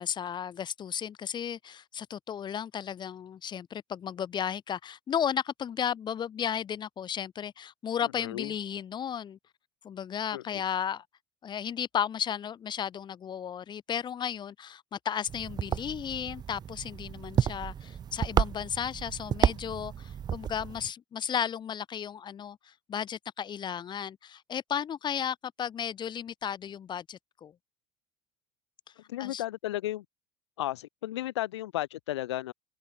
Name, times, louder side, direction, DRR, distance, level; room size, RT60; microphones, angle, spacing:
voice 1, 0.0-9.4 9.8-11.0 11.4-27.5 29.2-29.4, left 8 dB, 30° left, 0.8 m, -34 dB
voice 2, 8.0-8.5 10.3-10.6 29.1-30.0 30.6-32.5, left 15 dB, 70° left, 1.2 m, -34 dB
sound 1, 15.3-20.9, right 8 dB, 25° right, 0.5 m, -31 dB
figure-of-eight pair, 65°, 15 cm